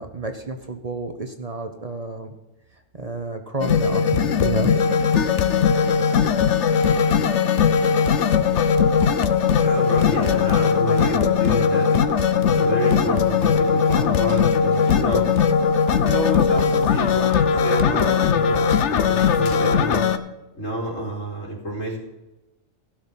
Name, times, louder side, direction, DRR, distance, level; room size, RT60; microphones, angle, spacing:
voice 1, 0.0-2.3 2.9-4.7, right 3 dB, 35° right, 6 dB, 1.0 m, -30 dB
sound 1, 3.6-20.2, left 6 dB, 65° left, 1.0 m, -19 dB
voice 2, 9.6-11.9 12.4-15.3 16.0-18.6 18.9-20.1 20.5-22.0, equal, 85° left, -2 dB, 3.9 m, -28 dB
16.0 x 6.4 x 5.8 m, 1.0 s
omnidirectional pair, 1.3 m